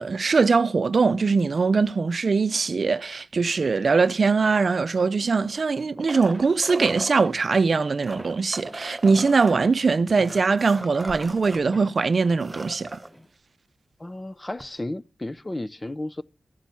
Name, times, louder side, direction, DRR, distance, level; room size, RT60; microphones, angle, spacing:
voice 1, 0.0-13.0, right 4 dB, 60° right, 0.6 m, -22 dB
sound 1, 5.4-7.3 7.9-11.6 12.0-12.1 12.3-13.1 14.6-14.7, right 1 dB, 20° right, 1.1 m, -37 dB
Walk footsteps, 6.3-13.3, equal, ahead, 3.0 m, -47 dB
voice 2, 14.0-16.2, left 1 dB, 25° left, 0.6 m, -33 dB
14.5 x 7.2 x 7.0 m
cardioid pair, 55°, 0 cm